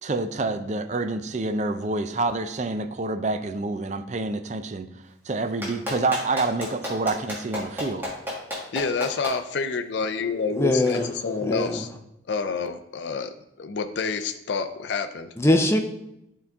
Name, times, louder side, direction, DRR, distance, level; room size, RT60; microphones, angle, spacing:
voice 1, 0.0-4.9 5.3-8.0, right 3 dB, 40° right, 9 dB, 0.4 m, -27 dB
Clapping, 5.6-9.3 10.9-11.0, left 1 dB, 10° right, 1.7 m, -31 dB
voice 2, 8.7-11.9 12.3-15.3, left 5 dB, 65° left, 8 dB, 0.4 m, -28 dB
voice 3, 10.5-11.1 11.4-11.8 15.4-15.8, left 1 dB, 15° left, 4 dB, 0.6 m, -21 dB
11.0 x 3.8 x 3.5 m, 0.85 s
head